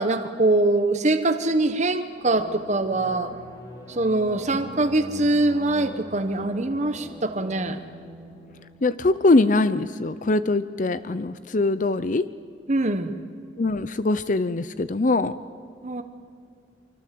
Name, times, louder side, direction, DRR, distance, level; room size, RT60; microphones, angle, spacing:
voice 1, 0.0-3.4 3.9-7.8 12.7-13.2 15.8-16.0, right 2 dB, 40° right, 8 dB, 1.2 m, -23 dB
sound 1, 2.2-9.5, equal, 20° left, 6.3 m, -43 dB
voice 2, 8.8-12.3 13.6-15.3, left 2 dB, 45° left, 14 dB, 0.6 m, -22 dB
25.0 x 25.0 x 7.7 m, 2.3 s
head